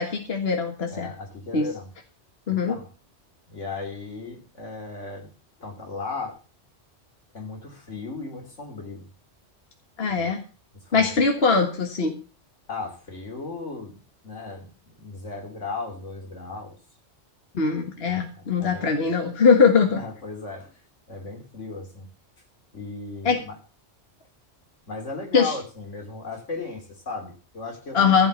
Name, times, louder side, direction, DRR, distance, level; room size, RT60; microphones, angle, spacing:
voice 1, 0.0-1.1 1.5-1.6 2.5-2.8 10.0-10.4 10.9-12.1 17.5-20.0 23.3-23.4 25.3-25.5 27.9-28.3, left 5 dB, 55° left, 4 dB, 1.8 m, -21 dB
voice 2, 0.9-1.9 2.5-2.9 3.5-5.3 5.6-6.4 7.3-9.1 10.2-10.3 10.8-11.1 12.7-16.8 18.1-18.9 19.9-20.8 21.1-22.1 22.7-23.6 24.9-28.2, left 3 dB, 85° left, 3 dB, 3.5 m, -36 dB
15.0 x 5.7 x 8.2 m, 0.36 s
omnidirectional pair, 1.2 m